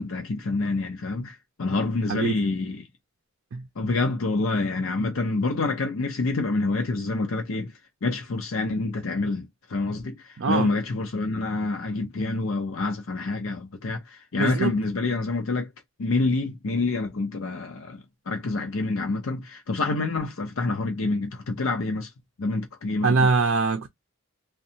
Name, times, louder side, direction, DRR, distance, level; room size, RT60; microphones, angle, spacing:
voice 1, 0.0-2.9 3.8-7.7 8.0-15.7 16.0-22.1 22.4-23.3, left 3 dB, 70° left, 0.6 m, -27 dB
voice 2, 10.4-10.7 14.4-14.8 23.0-23.9, right 4 dB, 60° right, 0.4 m, -23 dB
2.5 x 2.2 x 2.7 m
head